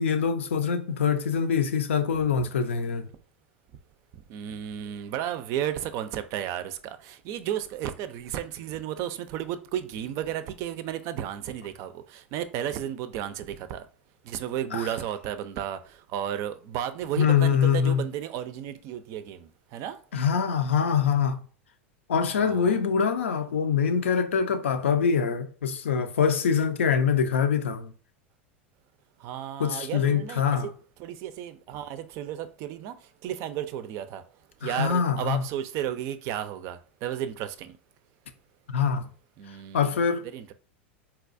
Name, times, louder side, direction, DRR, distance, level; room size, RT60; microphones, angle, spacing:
voice 1, 0.0-3.1 14.7-14.9 17.2-18.0 20.1-21.4 22.1-27.9 29.6-30.7 34.6-35.4 38.7-39.1 39.7-40.2, left 7 dB, 90° left, 0.4 m, -24 dB
voice 2, 4.3-13.9 14.2-20.0 22.3-22.8 29.2-30.7 31.0-33.0 33.2-34.2 34.6-37.7 39.4-40.5, right 10 dB, 50° right, 0.4 m, -33 dB
4.0 x 2.3 x 2.5 m
hypercardioid pair, 100°, 6 cm